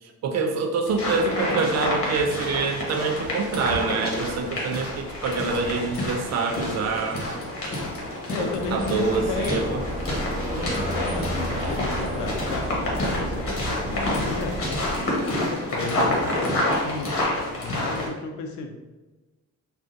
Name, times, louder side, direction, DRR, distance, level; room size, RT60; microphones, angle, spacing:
voice 1, 0.0-7.2 8.4-9.8, right 4 dB, 60° right, 4 dB, 0.5 m, -26 dB
sound 1, 0.8-18.1, left 1 dB, 50° left, 1.2 m, -28 dB
voice 2, 8.3-9.7 10.4-14.6 15.5-17.1 17.6-18.8, left 4 dB, 75° left, 4 dB, 0.6 m, -33 dB
sound 2, 8.6-15.1, right 1 dB, 20° right, 0.8 m, -32 dB
3.6 x 2.4 x 2.6 m, 1.2 s
cardioid pair, 90°, 30 cm